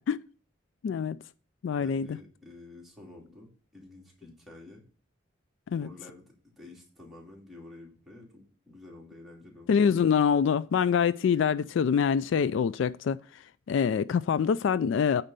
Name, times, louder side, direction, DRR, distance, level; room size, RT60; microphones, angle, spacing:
voice 1, 0.8-1.2 1.6-2.2 5.7-5.9 9.7-13.4 13.7-15.2, left 7 dB, 65° left, 0.3 m, -25 dB
voice 2, 1.8-4.8 5.8-9.8, left 2 dB, ahead, 2.5 m, -50 dB
8.9 x 4.3 x 6.7 m
head